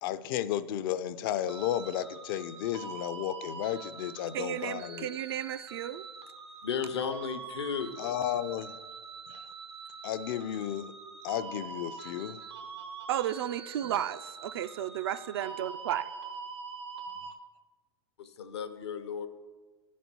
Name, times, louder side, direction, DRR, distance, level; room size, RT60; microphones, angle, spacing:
voice 1, 0.0-5.1 8.0-8.7 9.3-9.4 10.0-10.9 11.2-12.4 13.8-13.9, left 11 dB, 55° left, 14 dB, 0.4 m, -33 dB
sound 1, 1.5-17.3, right 5 dB, 85° right, 1.1 m, -44 dB
voice 2, 4.3-6.0 13.1-16.0, right 11 dB, 65° right, 13 dB, 0.4 m, -33 dB
voice 3, 6.6-7.9 18.2-19.3, left 7 dB, 80° left, 9 dB, 0.8 m, -34 dB
10.5 x 4.2 x 6.0 m, 1.4 s
hypercardioid pair, 105°, 14 cm